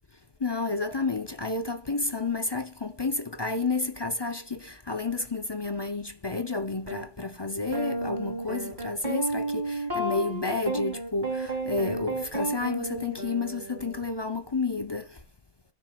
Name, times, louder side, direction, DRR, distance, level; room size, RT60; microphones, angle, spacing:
voice 1, 0.4-15.2, left 3 dB, 30° left, 0.5 m, -31 dB
sound 1, 6.9-7.0 7.7-14.0, right 1 dB, 35° right, 3.1 m, -32 dB
19.5 x 7.9 x 2.3 m
omnidirectional pair, 1.4 m